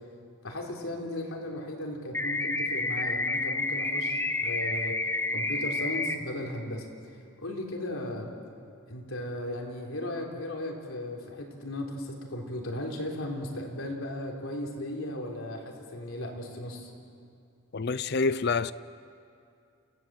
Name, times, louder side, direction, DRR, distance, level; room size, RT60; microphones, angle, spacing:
voice 1, 0.4-5.0 5.3-6.9 7.4-8.3 8.9-16.9, left 1 dB, 75° left, 3.8 m, -36 dB
sound 1, 2.1-6.1, left 2 dB, 10° left, 0.7 m, -29 dB
voice 2, 17.7-18.7, left 4 dB, 50° left, 0.5 m, -27 dB
29.0 x 17.5 x 7.8 m
head